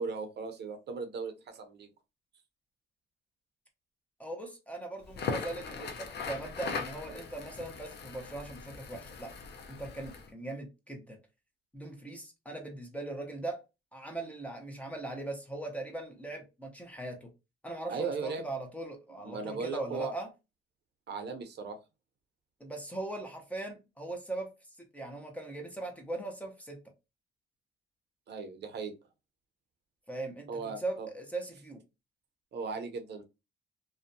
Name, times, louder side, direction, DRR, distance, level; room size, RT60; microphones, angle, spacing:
voice 1, 0.0-1.9 17.9-18.4 19.2-20.1 21.1-21.8 28.3-28.9 30.5-31.1 32.5-33.2, right 4 dB, 60° right, 0.7 m, -37 dB
voice 2, 4.2-9.3 9.7-11.2 11.7-13.6 13.9-17.3 17.6-20.3 22.6-24.5 24.8-26.8 30.1-31.8, right 2 dB, 5° left, 0.8 m, -40 dB
Crackle, 5.0-10.3, left 5 dB, 60° left, 0.6 m, -39 dB
2.5 x 2.2 x 2.6 m
cardioid pair, 90°, 20 cm